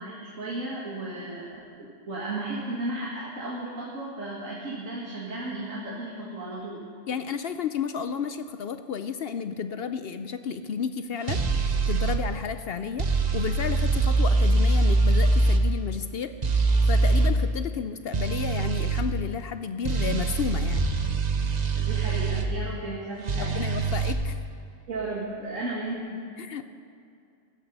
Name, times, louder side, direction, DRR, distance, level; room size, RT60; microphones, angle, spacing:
voice 1, 0.0-6.8 17.0-17.1 21.8-23.8 24.9-26.2, right 2 dB, 85° right, -5 dB, 2.4 m, -34 dB
voice 2, 7.1-11.4 11.9-16.3 16.9-20.9 23.4-24.4 26.4-26.6, left 6 dB, 60° left, 10 dB, 0.7 m, -32 dB
sound 1, 11.3-12.2 13.0-15.6 16.4-17.3 18.1-19.0 19.8-22.5 23.3-24.1, right 3 dB, 35° right, 1.0 m, -23 dB
15.5 x 12.5 x 5.4 m, 2.4 s
omnidirectional pair, 1.3 m